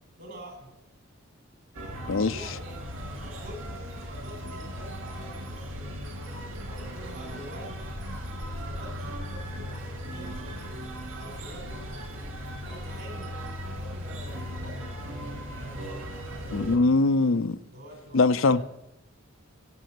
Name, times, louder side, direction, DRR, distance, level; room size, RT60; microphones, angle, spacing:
voice 1, 0.2-0.7 1.8-2.8 3.2-6.0 6.7-8.0 8.6-10.5 11.1-11.9 12.5-14.9 15.6-16.0 17.6-18.6, equal, 50° right, 4.9 m, -46 dB
sound 1, 1.7-16.8, equal, 65° right, 3.1 m, -37 dB
voice 2, 16.5-17.6 18.1-18.6, left 3 dB, 65° left, 0.6 m, -22 dB
15.5 x 7.0 x 9.4 m
head